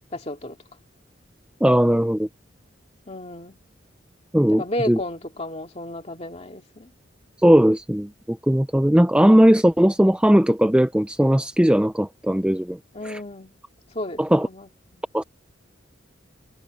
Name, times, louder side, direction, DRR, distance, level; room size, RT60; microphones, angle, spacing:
voice 1, 0.1-0.6 3.1-3.6 4.5-6.9 12.9-13.5 13.9-15.0, left 1 dB, 35° left, 2.5 m, -33 dB
voice 2, 1.6-2.3 4.3-5.0 7.4-12.8 13.0-13.2 14.2-14.5 15.1-15.2, equal, 5° right, 0.5 m, -18 dB
head